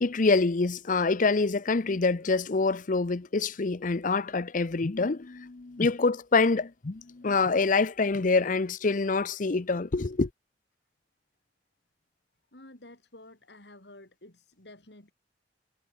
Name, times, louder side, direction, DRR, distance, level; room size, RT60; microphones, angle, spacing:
voice 1, 0.0-10.3, left 3 dB, 50° left, 0.7 m, -26 dB
voice 2, 12.5-15.1, left 1 dB, 70° left, 4.8 m, -51 dB
head